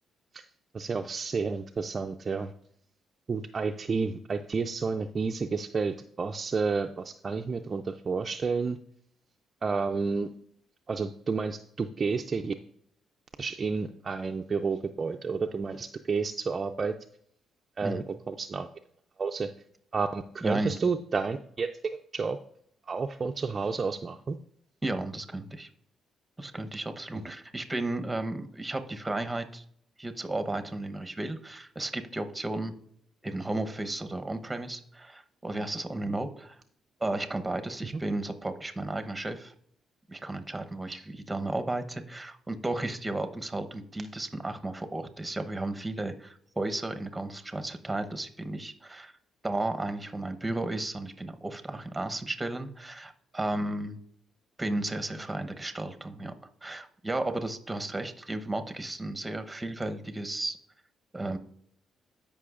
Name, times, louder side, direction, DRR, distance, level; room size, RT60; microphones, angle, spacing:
voice 1, 0.7-2.5 3.3-8.8 9.6-10.3 10.9-12.5 13.4-16.9 17.8-18.7 19.2-19.5 19.9-21.7 22.1-22.4 22.9-24.4, right 4 dB, 35° right, 5 dB, 0.4 m, -30 dB
voice 2, 20.4-20.8 24.8-25.7 26.4-29.6 30.0-32.7 33.2-36.6 37.0-39.5 40.1-41.0 41.3-49.1 49.4-54.0 54.6-56.3 56.6-60.6 61.1-61.4, right 2 dB, 15° right, 8 dB, 0.8 m, -33 dB
13.0 x 5.3 x 2.5 m, 0.66 s
cardioid pair, 90°, 0 cm